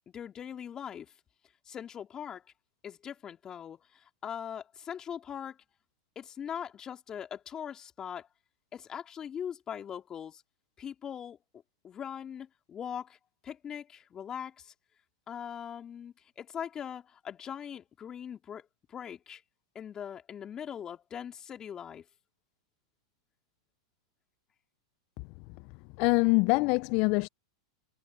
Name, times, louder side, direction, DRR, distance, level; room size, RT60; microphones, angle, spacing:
voice 1, 0.1-1.1 1.7-2.4 2.8-5.6 6.2-8.3 8.7-10.4 10.8-11.4 11.8-13.2 13.4-14.7 15.3-19.4 19.8-22.1, left 8 dB, 30° left, 3.5 m, -41 dB
voice 2, 26.0-27.3, left 29 dB, 50° left, 0.5 m, -24 dB
hypercardioid pair, 105°, 2 cm